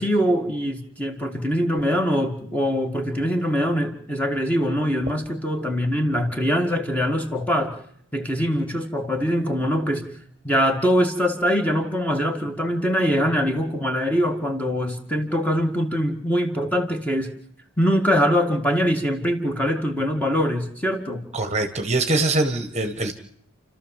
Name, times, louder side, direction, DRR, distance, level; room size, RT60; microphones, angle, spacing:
voice 1, 0.0-7.8 8.1-10.1 10.4-17.3 17.8-21.2, equal, 5° left, 4 dB, 1.9 m, -23 dB
voice 2, 21.3-23.1, right 2 dB, 30° right, 8 dB, 1.3 m, -23 dB
30.0 x 13.0 x 7.4 m, 0.69 s
head